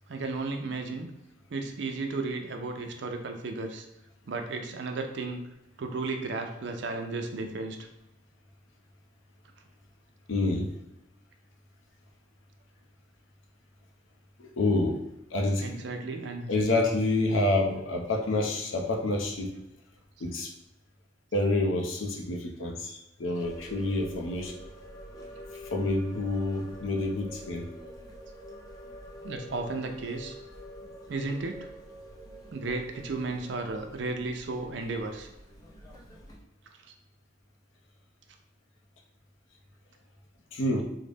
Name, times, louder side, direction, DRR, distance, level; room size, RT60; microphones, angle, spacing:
voice 1, 0.1-1.1 1.5-3.9 4.3-5.4 5.8-7.8 15.6-16.5 29.2-30.4 31.1-31.7 32.5-35.3 36.8-36.9, right 3 dB, 65° right, 4 dB, 0.4 m, -34 dB
voice 2, 10.3-10.7 14.4-15.0 15.3-15.8 16.5-19.5 20.2-20.5 21.3-24.5 25.5-27.7 40.5-40.8, left 2 dB, 85° left, 1 dB, 0.6 m, -28 dB
sound 1, 23.4-36.4, equal, 20° left, 0.5 m, -46 dB
3.9 x 2.1 x 3.4 m, 0.91 s
head